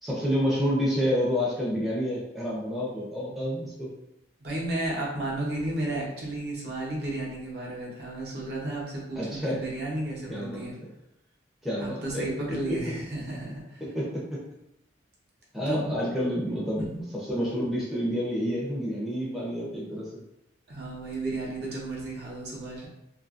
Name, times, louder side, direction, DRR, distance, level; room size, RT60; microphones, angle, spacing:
voice 1, 0.0-3.9 9.2-9.6 10.3-10.7 11.6-12.8 13.9-14.4 15.5-20.2, equal, ahead, -7 dB, 0.5 m, -29 dB
voice 2, 4.4-10.7 11.8-14.0 15.7-16.0 16.8-17.0 20.7-22.9, right 2 dB, 55° right, -4 dB, 0.8 m, -33 dB
2.7 x 2.5 x 2.4 m, 0.85 s
head